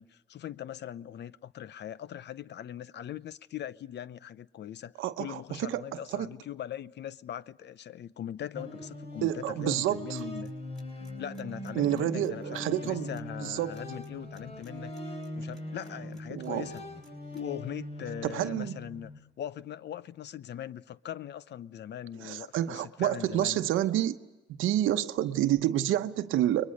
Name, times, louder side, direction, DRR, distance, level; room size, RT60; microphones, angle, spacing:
voice 1, 0.0-10.5 11.2-16.8 17.3-19.1 19.4-23.6, left 10 dB, 60° left, 0.7 m, -41 dB
voice 2, 5.0-6.3 9.2-10.2 11.7-13.1 13.4-13.8 16.3-16.7 18.2-18.8 22.2-24.2 24.6-26.7, right 12 dB, 85° right, 1.0 m, -29 dB
sound 1, 8.5-19.2, left 1 dB, 30° left, 3.7 m, -41 dB
sound 2, 10.1-17.4, right 1 dB, ahead, 5.9 m, -62 dB
30.0 x 22.0 x 6.5 m
cardioid pair, 90°, 20 cm